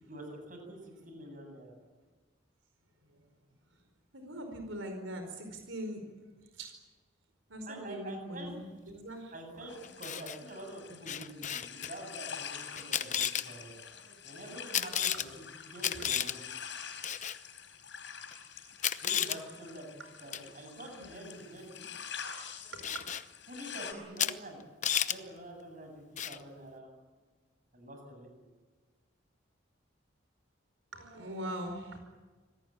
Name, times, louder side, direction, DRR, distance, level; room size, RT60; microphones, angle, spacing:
voice 1, 0.1-1.7 7.7-8.5 9.3-13.7 14.2-16.4 19.0-21.9 23.5-24.6 25.0-26.9 27.7-28.4, right 1 dB, 40° right, 3 dB, 7.9 m, -46 dB
voice 2, 4.1-6.1 6.5-6.7 7.5-9.7 13.3-13.4 13.7-14.6 15.7-16.1 20.0-20.1 21.0-21.3 22.6-23.0 30.9-32.0, right 1 dB, 90° right, 5 dB, 4.9 m, -42 dB
sound 1, 9.7-23.9, left 7 dB, 65° left, 5.1 m, -46 dB
Camera, 9.8-10.4 11.1-11.9 12.8-13.5 14.7-15.3 15.8-16.4 17.0-17.4 18.3-18.4 18.8-19.4 20.3-20.5 22.8-23.2 24.2-24.3 24.6-25.2 26.2-26.4, left 9 dB, 40° left, 0.9 m, -32 dB
26.5 x 19.0 x 9.0 m, 1.3 s
head